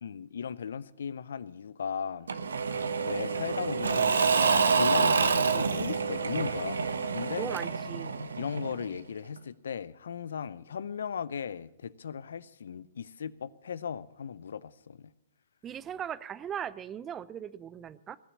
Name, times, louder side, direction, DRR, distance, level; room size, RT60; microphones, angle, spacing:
voice 1, 0.0-2.3 3.0-7.5 8.4-15.1, left 7 dB, 75° left, 0.5 m, -37 dB
Engine / Mechanisms / Drill, 2.3-9.0, right 5 dB, 80° right, 1.0 m, -27 dB
voice 2, 7.4-8.2 15.6-18.2, right 9 dB, 25° right, 0.6 m, -38 dB
19.5 x 7.0 x 8.5 m
hypercardioid pair, 120°, 0 cm